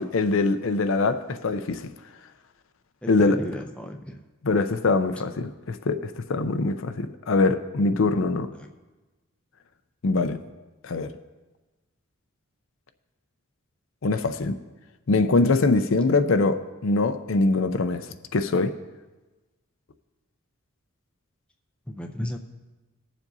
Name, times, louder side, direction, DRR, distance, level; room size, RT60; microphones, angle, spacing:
voice 1, 0.0-1.9 3.1-3.4 4.4-8.5 10.0-10.4 10.8-11.1 14.0-14.5 15.1-18.0 18.3-18.7, left 3 dB, 65° left, 9 dB, 0.5 m, -23 dB
voice 2, 3.0-4.2 8.5-8.7 21.9-22.4, left 1 dB, 5° left, 3 dB, 0.5 m, -34 dB
20.0 x 7.2 x 2.7 m, 1.2 s
head